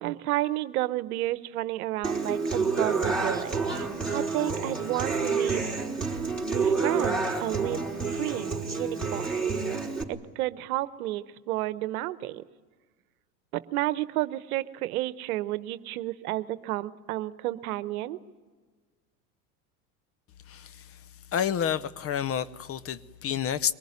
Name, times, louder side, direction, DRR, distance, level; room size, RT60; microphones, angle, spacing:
voice 1, 0.0-3.9 4.1-5.6 6.4-7.8 8.1-9.6 10.1-12.4 13.5-18.2, right 16 dB, 70° right, 1.1 m, -31 dB
Human voice / Acoustic guitar, 2.0-10.0, right 4 dB, ahead, 4.3 m, -29 dB
voice 2, 20.5-21.0 21.3-23.7, left 9 dB, 30° left, 0.8 m, -29 dB
23.5 x 19.5 x 9.7 m
hypercardioid pair, 95°, 46 cm